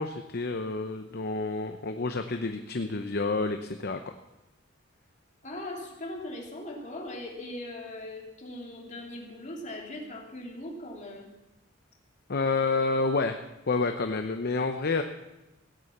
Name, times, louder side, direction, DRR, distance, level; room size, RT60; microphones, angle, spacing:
voice 1, 0.0-4.0 12.3-13.4 13.7-15.0, left 3 dB, 55° left, 7 dB, 0.8 m, -29 dB
voice 2, 5.4-11.3, left 1 dB, 40° left, -1 dB, 3.2 m, -40 dB
16.5 x 9.8 x 7.2 m, 0.98 s
head